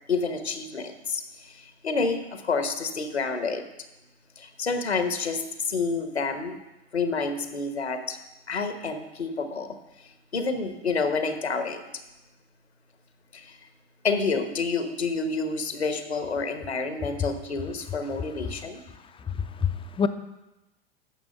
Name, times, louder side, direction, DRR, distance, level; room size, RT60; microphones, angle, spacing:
voice 1, 0.1-3.6 4.4-6.6 6.9-8.2 8.5-9.8 10.3-11.8 13.3-13.6 14.0-18.8, left 4 dB, 85° left, 8 dB, 1.2 m, -29 dB
voice 2, 19.3-20.1, left 6 dB, 15° left, 9 dB, 0.6 m, -27 dB
9.8 x 6.9 x 6.5 m, 0.98 s
figure-of-eight pair, 80°, 32 cm